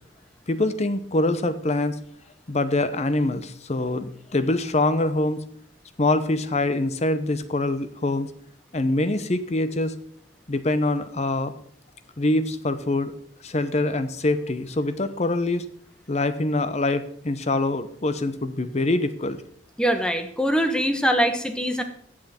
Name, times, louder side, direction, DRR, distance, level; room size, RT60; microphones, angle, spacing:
voice 1, 0.5-2.0 2.5-5.4 6.0-8.3 8.7-10.0 10.5-11.5 12.2-13.1 13.4-15.7 16.1-19.4, left 2 dB, 35° left, 12 dB, 0.8 m, -24 dB
voice 2, 19.8-21.8, equal, 5° left, 7 dB, 1.1 m, -23 dB
14.0 x 7.6 x 4.3 m, 0.64 s
head